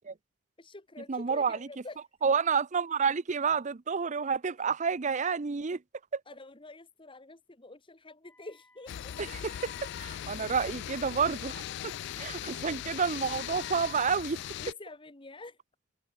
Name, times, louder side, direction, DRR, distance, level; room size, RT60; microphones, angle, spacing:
voice 1, 0.6-2.0 6.3-9.1 14.6-15.6, left 2 dB, 25° left, 1.6 m, -47 dB
voice 2, 1.1-1.6 2.2-5.8 6.1-6.2 9.2-9.7 10.0-14.4, right 5 dB, 35° right, 0.6 m, -29 dB
Wind instrument woodwind instrument, 8.2-14.7, left 2 dB, 10° left, 4.9 m, -67 dB
sound 1, 8.9-14.7, left 11 dB, 60° left, 0.3 m, -39 dB
head